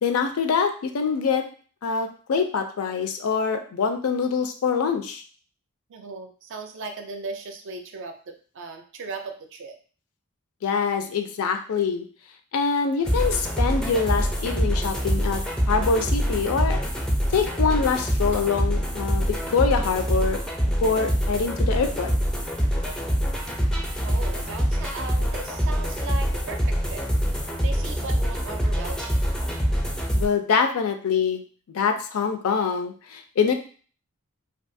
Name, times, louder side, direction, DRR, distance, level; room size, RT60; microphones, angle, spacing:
voice 1, 0.0-1.5 1.8-5.2 10.6-12.0 12.5-15.4 15.7-16.8 17.3-20.4 20.8-22.1 30.2-31.4 31.7-33.5, left 5 dB, 70° left, 6 dB, 0.4 m, -24 dB
voice 2, 5.9-9.8 24.0-27.1 27.6-29.2, right 3 dB, 60° right, 5 dB, 0.4 m, -37 dB
sound 1, 13.1-30.3, equal, 5° left, 0.3 m, -25 dB
2.7 x 2.3 x 2.6 m, 0.42 s
head